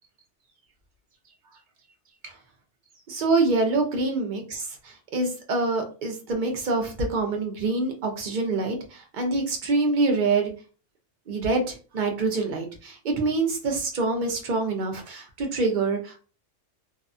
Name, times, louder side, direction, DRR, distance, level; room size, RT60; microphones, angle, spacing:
voice 1, 3.1-10.5 11.3-16.2, right 3 dB, 50° right, 3 dB, 0.7 m, -26 dB
2.7 x 2.2 x 2.5 m, 0.36 s
omnidirectional pair, 1.3 m